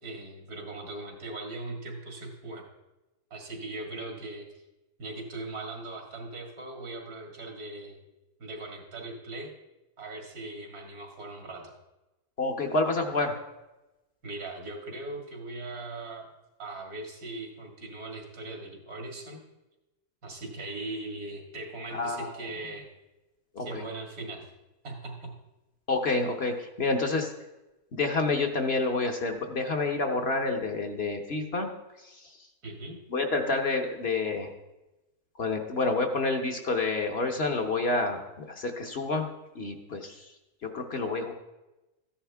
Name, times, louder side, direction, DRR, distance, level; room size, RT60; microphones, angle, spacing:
voice 1, 0.0-2.6 3.3-4.6 5.0-8.0 8.4-9.5 10.0-11.8 14.2-16.3 16.6-19.4 20.2-22.9 23.6-24.5 24.8-25.3 32.6-33.0, right 2 dB, 80° right, 1 dB, 2.4 m, -39 dB
voice 2, 12.4-13.3 21.9-22.3 23.6-23.8 25.9-27.3 27.9-31.7 33.1-34.5 35.4-39.3 39.5-40.2 40.7-41.3, left 3 dB, 50° left, 3 dB, 1.1 m, -28 dB
14.0 x 10.0 x 3.5 m, 1.0 s
omnidirectional pair, 1.6 m